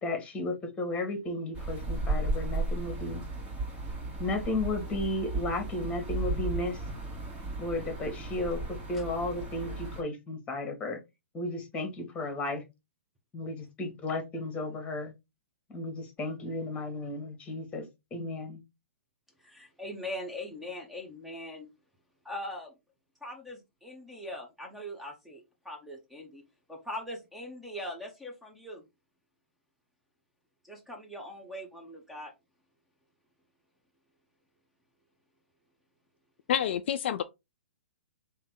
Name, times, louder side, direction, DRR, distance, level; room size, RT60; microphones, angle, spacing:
voice 1, 0.0-3.2 4.2-6.8 7.6-11.0 11.3-12.6 13.3-15.1 15.7-18.6, left 2 dB, 15° left, 1.6 m, -34 dB
sound 1, 1.5-10.0, right 2 dB, 30° right, 2.1 m, -35 dB
voice 2, 19.4-21.7 22.2-22.8 23.2-26.4 26.7-28.8 30.6-32.3, left 1 dB, ahead, 1.1 m, -41 dB
voice 3, 36.5-37.2, left 9 dB, 55° left, 0.4 m, -28 dB
3.4 x 2.9 x 3.8 m
hypercardioid pair, 120°, 7 cm